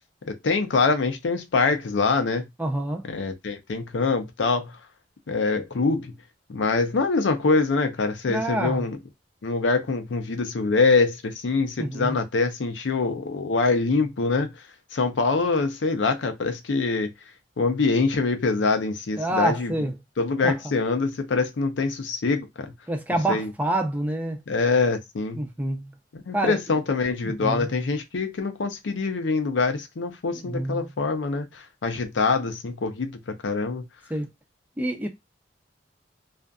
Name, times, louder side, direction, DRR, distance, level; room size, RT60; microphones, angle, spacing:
voice 1, 0.2-2.5 3.0-4.8 5.3-6.1 6.5-9.0 9.4-14.6 14.9-17.1 17.6-19.9 20.2-22.7 23.3-23.5 24.5-25.4 26.1-33.8, left 4 dB, 80° left, 0.5 m, -24 dB
voice 2, 2.6-3.1 8.3-8.9 11.8-12.2 19.2-19.9 20.4-20.5 22.9-24.4 25.3-25.9 26.3-26.8 27.2-27.7 30.3-30.9 34.1-34.3 34.8-35.1, right 1 dB, 10° right, 0.5 m, -27 dB
2.5 x 2.4 x 2.3 m
head